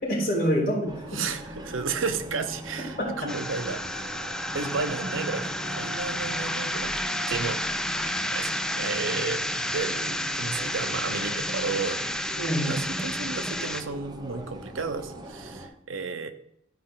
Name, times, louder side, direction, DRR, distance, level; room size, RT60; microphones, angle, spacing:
voice 1, 0.0-1.3 3.0-3.3 4.6-4.7 12.4-12.8, equal, 50° left, -5 dB, 3.6 m, -27 dB
sound 1, 0.9-15.7, right 1 dB, 20° right, 0.9 m, -41 dB
voice 2, 1.1-4.1 4.5-7.0 7.3-7.6 8.0-9.5 9.7-12.1 12.6-16.3, right 4 dB, 80° right, 9 dB, 0.8 m, -33 dB
sound 2, 3.3-13.8, left 1 dB, 5° left, 0.4 m, -31 dB
12.5 x 5.2 x 3.8 m, 0.77 s
head